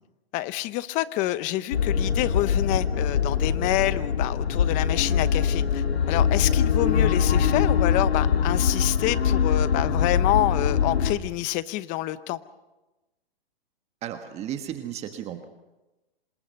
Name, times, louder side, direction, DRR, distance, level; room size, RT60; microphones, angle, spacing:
voice 1, 0.3-12.4, left 16 dB, 25° left, 15 dB, 0.9 m, -27 dB
sound 1, 1.7-11.1, left 7 dB, 85° left, 2.9 m, -23 dB
voice 2, 14.0-15.5, right 10 dB, 20° right, 7 dB, 1.4 m, -34 dB
27.5 x 26.5 x 5.5 m, 1.0 s
hypercardioid pair, 145°, 30 cm